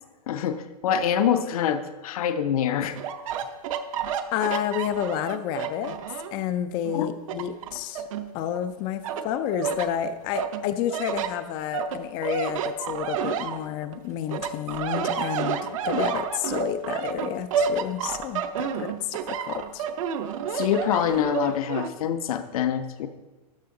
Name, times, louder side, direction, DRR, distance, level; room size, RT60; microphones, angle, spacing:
voice 1, 0.3-3.0 6.9-7.1 20.4-23.1, left 9 dB, 60° left, 9 dB, 0.8 m, -25 dB
sound 1, 3.0-6.4 6.8-8.6 9.0-9.9 10.3-14.0 14.3-21.9, right 7 dB, 55° right, 0.6 m, -30 dB
voice 2, 4.3-6.0 6.3-8.0 8.3-19.9, left 10 dB, 25° left, 12 dB, 0.3 m, -30 dB
12.5 x 5.7 x 3.8 m, 1.1 s
hypercardioid pair, 155°, 21 cm